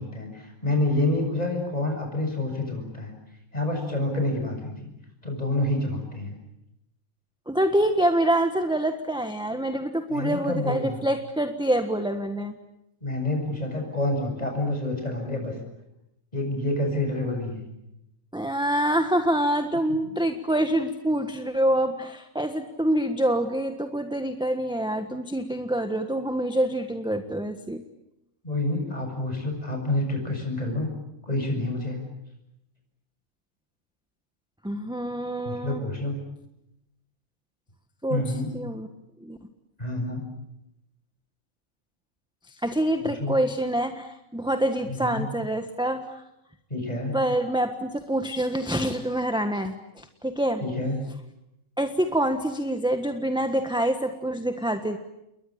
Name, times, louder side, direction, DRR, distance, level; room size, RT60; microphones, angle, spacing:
voice 1, 0.0-3.1 3.5-4.7 5.2-6.4 10.1-11.0 13.0-15.5 16.3-17.6 20.0-20.1 28.4-30.9 31.2-32.0 35.4-36.2 38.1-38.5 39.8-40.3 43.0-43.3 44.9-45.3 46.7-47.2 50.6-51.0, left 2 dB, 25° left, 3 dB, 7.4 m, -28 dB
voice 2, 7.5-12.5 18.3-27.8 34.6-35.8 38.0-38.2 38.5-38.9 39.2-39.4 42.5-46.2 47.1-50.6 51.8-55.0, right 1 dB, 5° right, 6 dB, 1.4 m, -26 dB
29.0 x 22.5 x 8.9 m, 0.86 s
omnidirectional pair, 1.5 m